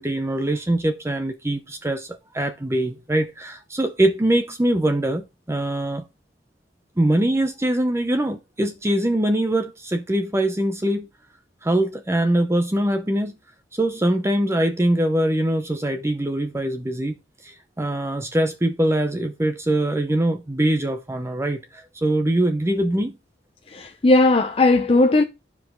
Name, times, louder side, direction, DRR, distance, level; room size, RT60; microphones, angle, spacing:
voice 1, 0.0-6.0 7.0-11.1 11.6-13.3 13.7-17.2 17.4-23.2, right 1 dB, 15° right, 0.7 m, -23 dB
voice 2, 23.7-25.2, left 2 dB, 30° left, 0.6 m, -17 dB
12.0 x 4.9 x 3.7 m
head